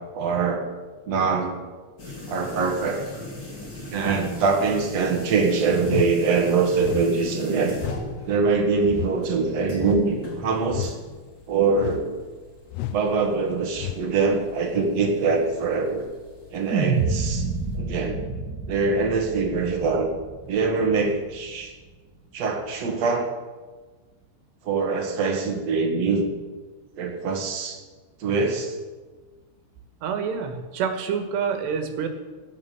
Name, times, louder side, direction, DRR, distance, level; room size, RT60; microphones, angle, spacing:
voice 1, 0.1-0.7 1.1-1.6 2.3-3.0 3.8-7.8 8.3-11.0 11.5-12.2 12.9-16.1 16.5-17.4 17.7-18.2 18.7-20.1 20.5-21.7 22.3-23.3 24.6-26.3 27.0-27.8 28.2-28.8, right 4 dB, 50° right, 2 dB, 2.3 m, -23 dB
sound 1, 2.0-17.8, left 2 dB, 25° left, 3.0 m, -41 dB
sound 2, 5.8-6.2 6.8-7.1 7.8-8.1 8.9-9.2 9.8-10.1 10.7-11.0 11.8-12.1 12.7-13.0 13.8-14.1, left 12 dB, 80° left, 2.5 m, -31 dB
sound 3, 16.7-21.1, right 4 dB, 30° right, 2.3 m, -28 dB
voice 2, 30.0-32.1, right 6 dB, 75° right, 6 dB, 3.6 m, -27 dB
15.0 x 10.5 x 7.1 m, 1.3 s
omnidirectional pair, 5.0 m